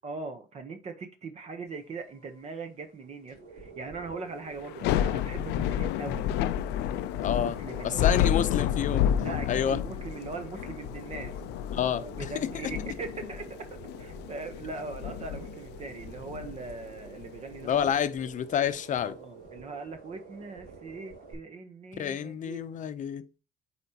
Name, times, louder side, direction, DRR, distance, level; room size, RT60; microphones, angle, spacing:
voice 1, 0.0-6.3 7.4-8.3 9.1-11.4 11.9-17.9 18.9-22.6, right 4 dB, 40° right, 0.9 m, -40 dB
sound 1, 1.7-21.3, right 4 dB, 70° right, 3.2 m, -49 dB
Thunder / Rain, 4.6-17.8, left 10 dB, 85° left, 0.4 m, -30 dB
voice 2, 7.2-7.6 7.8-9.1 9.5-9.8 11.7-12.3 17.6-19.2 21.9-23.4, left 9 dB, 50° left, 0.7 m, -29 dB
8.3 x 4.4 x 2.8 m
cardioid pair, 110°, 17 cm